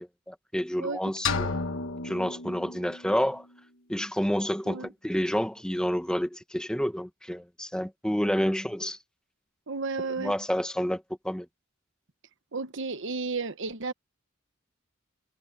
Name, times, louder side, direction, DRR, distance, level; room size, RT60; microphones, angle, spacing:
voice 1, 0.3-1.5 2.0-3.4 3.9-9.0 10.2-11.5, equal, 5° left, 1.5 m, -29 dB
sound 1, 1.3-3.2, left 4 dB, 65° left, 1.4 m, -32 dB
voice 2, 9.7-10.4 12.5-13.9, right 4 dB, 60° right, 1.2 m, -33 dB
head